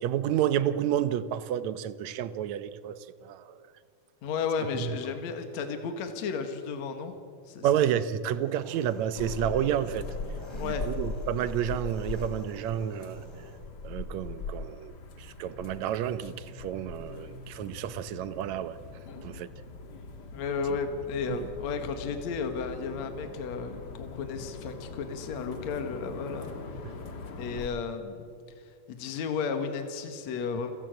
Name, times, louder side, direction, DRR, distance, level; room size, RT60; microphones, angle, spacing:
voice 1, 0.0-3.6 4.7-4.9 7.6-10.1 10.6-13.2 13.8-18.8 19.2-19.5 21.3-21.5 26.8-26.9, right 10 dB, 70° right, 14 dB, 2.0 m, -30 dB
voice 2, 4.2-7.2 7.5-7.7 10.5-10.9 19.1-19.4 20.3-26.5 27.4-28.3 28.9-30.7, left 5 dB, 65° left, 7 dB, 2.8 m, -33 dB
Engine, 8.3-13.6, equal, 10° left, 3.4 m, -50 dB
sound 1, 9.1-27.7, left 3 dB, 40° left, 1.7 m, -41 dB
29.0 x 17.0 x 7.8 m, 2.3 s
omnidirectional pair, 3.6 m